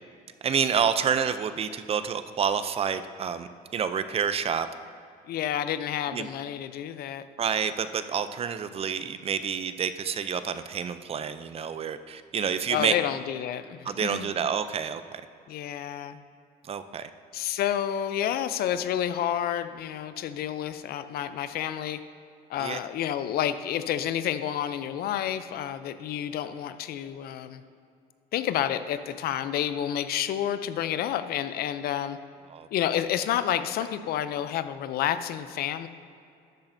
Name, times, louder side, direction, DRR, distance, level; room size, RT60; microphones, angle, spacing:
voice 1, 0.4-4.7 6.1-6.3 7.4-12.9 13.9-15.2 16.7-17.1 22.6-22.8 32.5-32.7, right 7 dB, 35° right, 12 dB, 0.4 m, -28 dB
voice 2, 5.3-7.2 12.7-14.3 15.5-16.2 17.3-22.0 22.5-27.6 28.3-32.2 32.7-35.9, left 10 dB, 65° left, 12 dB, 0.5 m, -29 dB
12.0 x 8.5 x 2.7 m, 2.5 s
cardioid pair, 110°, 17 cm